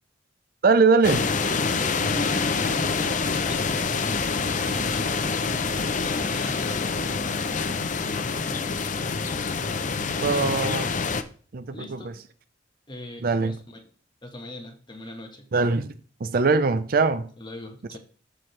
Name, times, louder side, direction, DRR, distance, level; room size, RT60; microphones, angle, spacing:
voice 1, 0.6-1.2 10.2-10.9 11.5-12.1 13.2-13.5 15.5-15.9 16.2-17.3, right 4 dB, 50° right, 0.5 m, -21 dB
sound 1, 1.0-11.2, left 4 dB, 40° left, 0.6 m, -26 dB
voice 2, 1.9-8.7 11.7-12.2 12.9-13.8 14.2-15.5 17.4-18.0, equal, 25° left, 1.4 m, -40 dB
13.5 x 4.6 x 3.2 m
head